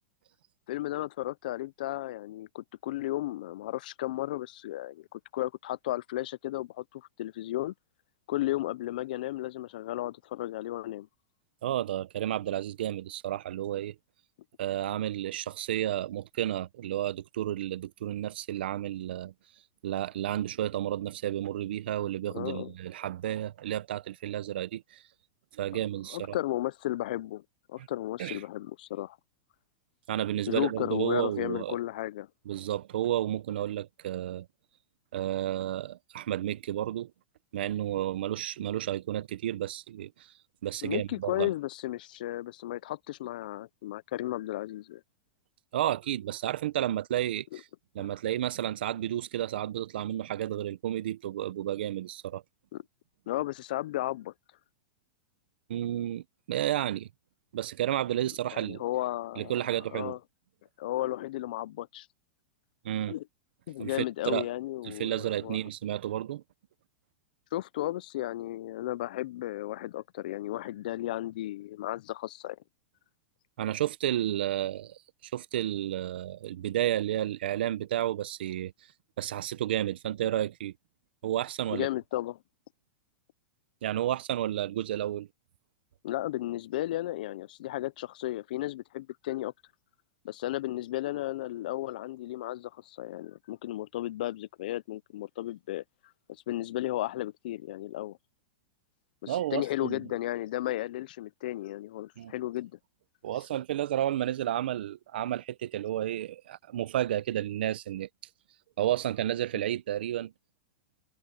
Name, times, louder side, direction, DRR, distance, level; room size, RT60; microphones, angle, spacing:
voice 1, 0.7-7.7 8.3-11.1 22.3-22.7 26.1-27.4 27.7-29.2 30.5-32.3 40.8-45.0 47.5-47.6 48.0-48.1 52.7-52.8 53.3-54.3 58.5-60.2 60.8-62.1 63.1-63.2 63.7-65.6 67.5-72.6 81.7-82.4 86.0-89.5 90.2-95.8 96.5-98.2 99.2-102.8, left 15 dB, 50° left, 0.4 m, -34 dB
voice 2, 11.6-13.9 14.6-19.3 19.8-25.0 25.6-26.4 28.2-28.4 30.1-31.8 32.5-34.5 35.1-37.1 37.5-40.1 40.6-41.5 45.7-47.6 47.9-52.4 55.7-57.1 57.5-58.8 59.4-60.2 62.8-63.2 63.8-64.5 64.8-66.4 73.6-78.7 79.2-80.7 81.2-81.9 83.8-85.3 99.3-100.0 102.2-102.3 103.2-108.1 108.8-110.3, right 12 dB, 65° right, 0.7 m, -31 dB
supercardioid pair, 175°, 6 cm